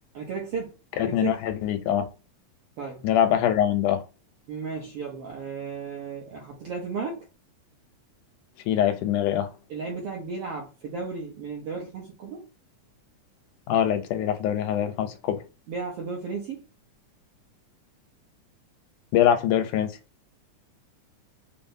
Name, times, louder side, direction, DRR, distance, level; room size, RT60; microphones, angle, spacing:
voice 1, 0.1-0.7 1.1-1.4 2.8-3.1 4.5-7.3 9.7-12.5 15.7-16.6, right 5 dB, 75° right, 1.3 m, -34 dB
voice 2, 1.0-2.1 3.0-4.0 8.7-9.5 13.7-15.4 19.1-20.0, left 10 dB, 85° left, 2.0 m, -23 dB
6.0 x 2.0 x 2.6 m
omnidirectional pair, 3.5 m